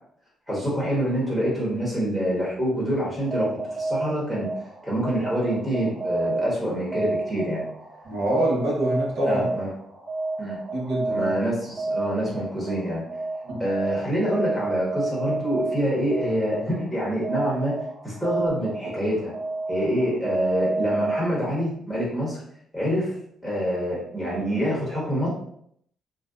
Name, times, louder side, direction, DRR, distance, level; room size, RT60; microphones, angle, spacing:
voice 1, 0.5-4.5 4.8-7.7 9.2-9.7 10.4-10.6 11.1-13.0 13.6-17.7 18.0-19.3 19.7-22.4 22.7-23.1 23.4-25.3, equal, 5° right, -6 dB, 1.0 m, -26 dB
sound 1, 3.2-21.7, right 2 dB, 35° right, 0.5 m, -30 dB
voice 2, 8.0-9.5 10.7-11.3 13.4-13.6, right 1 dB, 75° right, -3 dB, 0.9 m, -25 dB
2.5 x 2.2 x 2.3 m, 0.69 s
cardioid pair, 90°, 0 cm